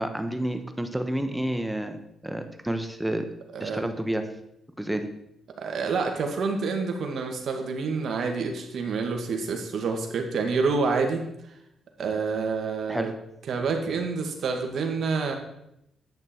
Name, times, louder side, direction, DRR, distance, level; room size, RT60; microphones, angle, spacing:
voice 1, 0.0-3.2 3.6-4.3 4.8-5.1 12.9-13.1, right 1 dB, 5° right, 7 dB, 1.2 m, -29 dB
voice 2, 5.6-11.2 12.0-13.1 13.5-15.3, right 4 dB, 65° right, 3 dB, 2.0 m, -28 dB
10.5 x 8.7 x 4.5 m, 0.81 s
cardioid pair, 85°, 0 cm